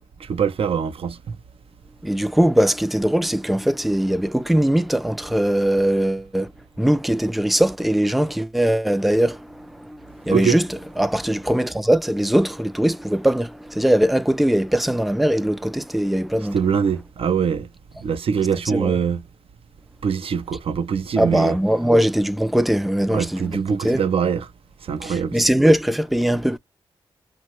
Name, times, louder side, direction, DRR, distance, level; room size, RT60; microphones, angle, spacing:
voice 1, 0.2-1.4 10.3-10.6 16.5-17.7 18.0-19.2 20.0-21.6 23.1-24.5 24.8-25.4, right 7 dB, 65° right, 0.5 m, -23 dB
voice 2, 2.0-6.5 6.8-10.6 11.0-16.6 18.7-18.9 21.2-24.0 25.0-26.6, right 1 dB, ahead, 0.4 m, -20 dB
2.9 x 2.2 x 3.0 m
supercardioid pair, 40°, 10 cm